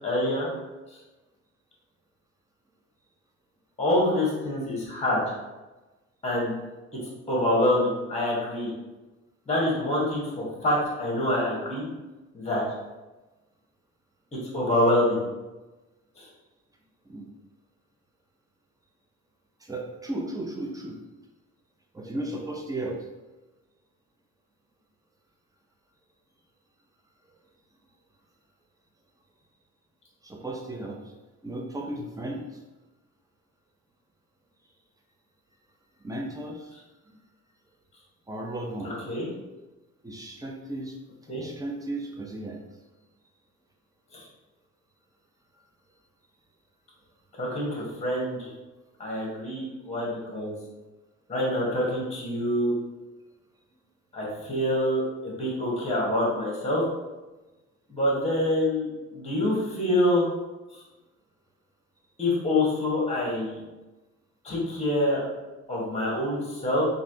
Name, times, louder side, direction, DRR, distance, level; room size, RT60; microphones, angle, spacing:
voice 1, 0.0-0.5 0.9-1.0 3.8-5.2 6.2-6.5 7.3-8.7 9.5-11.9 12.3-12.6 14.5-15.2 16.2-16.3 38.8-39.3 41.3-41.4 44.1-44.3 47.4-48.5 49.0-50.5 51.3-52.8 54.1-56.8 57.9-60.3 60.7-60.8 62.2-63.6 64.4-65.2 65.7-66.9, left 1 dB, 20° left, -4 dB, 1.3 m, -26 dB
voice 2, 19.6-21.0 21.9-23.0 30.2-31.1 31.4-32.6 36.0-36.7 37.1-37.2 38.3-38.9 40.0-41.0 41.4-42.6, right 1 dB, 10° right, 0 dB, 0.5 m, -35 dB
3.1 x 2.6 x 2.8 m, 1.1 s
cardioid pair, 90°, 30 cm